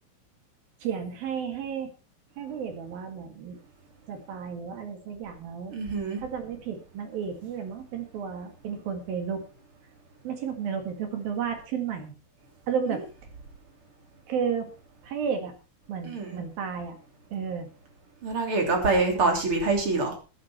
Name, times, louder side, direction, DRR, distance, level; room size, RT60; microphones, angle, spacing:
voice 1, 0.8-1.9 2.4-3.6 4.1-5.7 6.2-9.4 10.2-12.1 12.7-13.0 14.3-14.7 15.0-15.5 15.9-17.0 17.3-17.7, right 7 dB, 55° right, 5 dB, 3.3 m, -32 dB
voice 2, 5.7-6.2 16.1-16.4 18.2-20.1, right 3 dB, 30° right, 2 dB, 3.5 m, -25 dB
14.0 x 11.5 x 4.4 m, 0.33 s
omnidirectional pair, 5.6 m